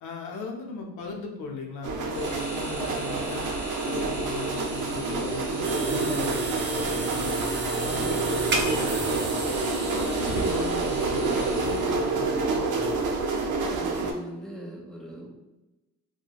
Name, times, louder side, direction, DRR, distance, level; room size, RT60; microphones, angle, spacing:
voice 1, 0.0-3.5 3.8-7.3 7.7-9.5 9.9-13.1, left 4 dB, 75° left, 1 dB, 0.6 m, -38 dB
sound 1, 1.8-14.1, right 3 dB, 85° right, 0.6 m, -28 dB
sound 2, 2.1-12.2, right 1 dB, 20° right, 1.2 m, -41 dB
sound 3, 5.6-12.4, right 3 dB, 40° right, 0.6 m, -35 dB
voice 2, 13.6-15.3, right 1 dB, ahead, -3 dB, 1.0 m, -41 dB
3.9 x 2.2 x 2.3 m, 1.0 s
cardioid pair, 90°, 30 cm